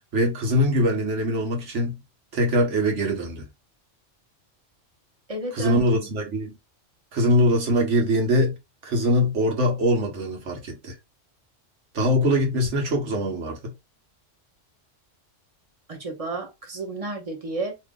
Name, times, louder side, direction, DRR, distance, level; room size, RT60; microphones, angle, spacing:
voice 1, 0.1-2.0 2.3-3.5 5.5-6.6 7.1-8.5 8.8-10.9 11.9-13.6, equal, 70° right, 1.4 m, -22 dB
voice 2, 5.3-6.1 15.9-17.8, right 2 dB, 30° right, 1.0 m, -32 dB
2.8 x 2.7 x 3.6 m
omnidirectional pair, 1.3 m